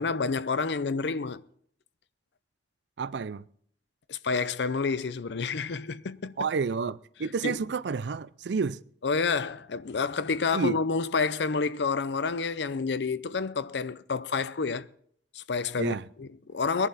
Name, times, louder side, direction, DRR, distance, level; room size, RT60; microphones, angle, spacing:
voice 1, 0.0-1.4 4.1-6.3 7.4-7.6 9.0-14.9 15.3-16.9, left 4 dB, 70° left, 0.6 m, -29 dB
voice 2, 3.0-3.4 6.4-8.8 10.5-10.8 15.8-16.0, right 5 dB, 70° right, 0.5 m, -30 dB
20.0 x 11.0 x 4.1 m
head